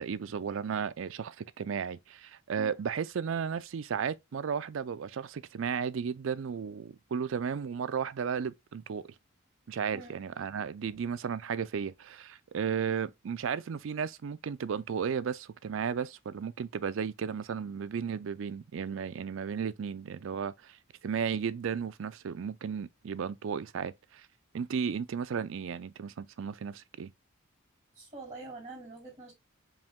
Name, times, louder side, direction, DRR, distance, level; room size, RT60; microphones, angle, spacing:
voice 1, 0.0-9.1 9.7-20.8 21.0-24.2 24.5-27.1, right 6 dB, 65° right, 0.4 m, -34 dB
voice 2, 27.9-29.3, right 2 dB, 25° right, 2.9 m, -45 dB
4.8 x 2.8 x 3.6 m
head